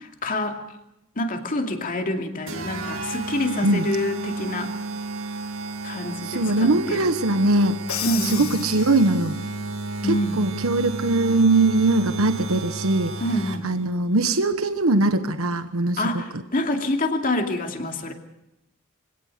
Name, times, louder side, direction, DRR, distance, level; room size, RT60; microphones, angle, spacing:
voice 1, 0.2-0.6 1.2-4.7 5.8-7.1 8.0-8.5 10.0-10.4 13.2-13.7 16.0-18.1, left 1 dB, 40° left, 4 dB, 2.5 m, -26 dB
sound 1, 2.5-13.9, right 3 dB, 75° right, 2.1 m, -33 dB
voice 2, 6.2-7.8 8.2-9.4 10.0-13.2 13.6-16.0 16.3-16.4, right 2 dB, 90° right, 9 dB, 1.2 m, -21 dB
Crash cymbal, 7.9-9.6, left 10 dB, 85° left, 1.5 m, -33 dB
25.0 x 17.5 x 6.7 m, 0.86 s
head